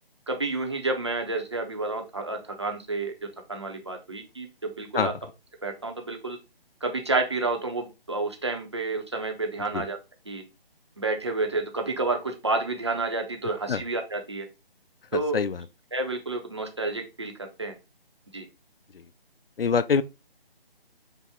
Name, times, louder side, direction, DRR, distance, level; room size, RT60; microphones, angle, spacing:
voice 1, 0.3-3.1 3.5-5.1 5.6-6.4 6.8-10.0 10.3-10.4 11.0-14.5 15.1-15.4 15.9-17.3 17.6-17.7 18.3-18.5, right 3 dB, 30° right, 0.5 m, -30 dB
voice 2, 15.1-15.6 19.6-20.0, left 6 dB, 70° left, 0.5 m, -24 dB
5.3 x 2.0 x 3.5 m
figure-of-eight pair, 150°, 30 cm